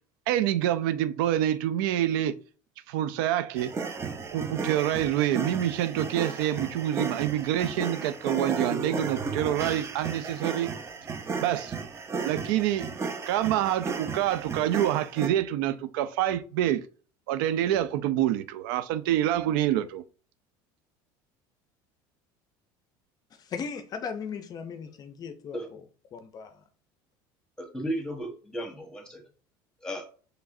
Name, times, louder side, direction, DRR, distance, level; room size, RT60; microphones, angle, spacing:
voice 1, 0.3-2.4 2.9-3.7 4.3-10.7 11.4-11.7 12.2-12.9 13.3-16.8 17.3-20.0, right 12 dB, 80° right, 0.4 m, -26 dB
sound 1, 3.6-15.3, right 4 dB, 25° right, 0.6 m, -34 dB
voice 2, 23.4-25.6 26.1-26.6, left 6 dB, 35° left, 0.5 m, -37 dB
voice 3, 27.6-29.2 29.8-30.0, equal, 5° left, 1.2 m, -34 dB
4.7 x 3.2 x 2.6 m
supercardioid pair, 115°, 11 cm